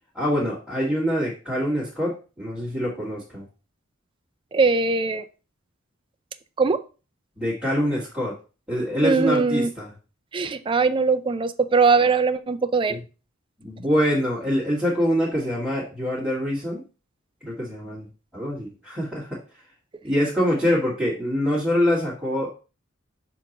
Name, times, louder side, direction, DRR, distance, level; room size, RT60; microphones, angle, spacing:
voice 1, 0.1-3.5 7.4-8.3 8.7-9.9 12.9-13.0 13.6-16.8 17.4-19.4 20.0-22.5, equal, 5° right, -10 dB, 1.9 m, -25 dB
voice 2, 4.5-5.2 6.6-6.8 9.0-9.7 10.3-13.0, right 4 dB, 25° right, 10 dB, 0.4 m, -21 dB
6.9 x 3.0 x 5.2 m, 0.34 s
head